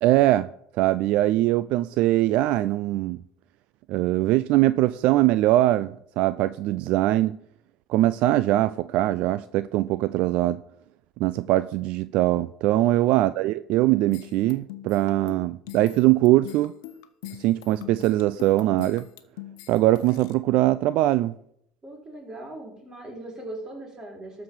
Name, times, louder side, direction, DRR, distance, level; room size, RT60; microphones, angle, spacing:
voice 1, 0.0-0.5 0.8-3.2 3.9-7.4 7.9-10.6 11.2-16.7 17.4-19.1 19.7-21.3, right 16 dB, 65° right, 0.4 m, -22 dB
sound 1, 14.1-20.3, left 14 dB, 80° left, 0.9 m, -42 dB
voice 2, 21.8-24.4, right 1 dB, 25° right, 4.4 m, -39 dB
13.0 x 4.9 x 7.2 m
supercardioid pair, 100°, 2 cm